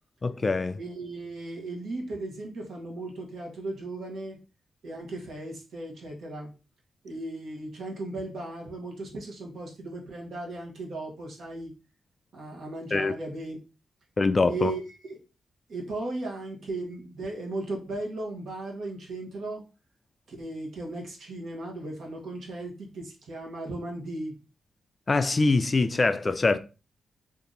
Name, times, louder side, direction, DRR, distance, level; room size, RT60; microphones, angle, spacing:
voice 1, 0.2-0.8 12.9-13.1 14.2-14.7 25.1-26.6, left 3 dB, 35° left, 0.3 m, -24 dB
voice 2, 0.8-4.4 4.8-6.5 7.0-11.7 12.3-13.6 14.5-15.2 15.7-19.6 20.3-24.3, right 2 dB, 75° right, 1.2 m, -36 dB
2.8 x 2.6 x 3.8 m
cardioid pair, 85°, 0 cm